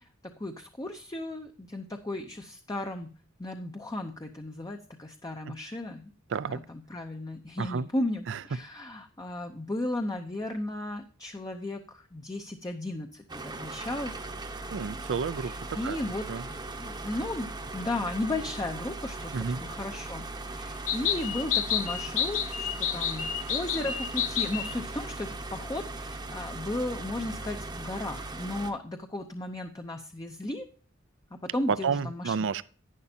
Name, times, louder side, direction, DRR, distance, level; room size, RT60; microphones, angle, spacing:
voice 1, 0.0-3.1 3.4-6.1 6.5-14.2 15.3-20.3 20.6-30.7 31.3-32.3, left 1 dB, 20° left, 0.7 m, -35 dB
voice 2, 7.6-7.9 8.3-8.4 14.7-16.0 16.3-16.4 19.3-19.6 31.7-32.6, right 5 dB, 60° right, 0.4 m, -31 dB
sound 1, 13.3-28.7, right 2 dB, 20° right, 0.9 m, -39 dB
sound 2, 20.9-24.7, left 9 dB, 75° left, 0.9 m, -30 dB
11.0 x 9.8 x 2.7 m
head